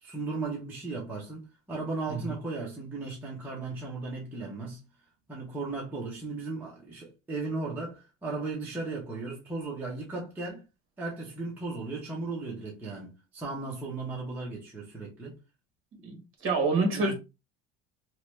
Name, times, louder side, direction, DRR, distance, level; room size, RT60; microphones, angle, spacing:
voice 1, 0.0-4.8 5.3-10.6 11.0-15.4 16.9-17.1, right 3 dB, 5° right, 0.5 m, -36 dB
voice 2, 16.0-17.1, right 3 dB, 40° right, 1.2 m, -27 dB
2.9 x 2.2 x 3.1 m
cardioid pair, 165°, 32 cm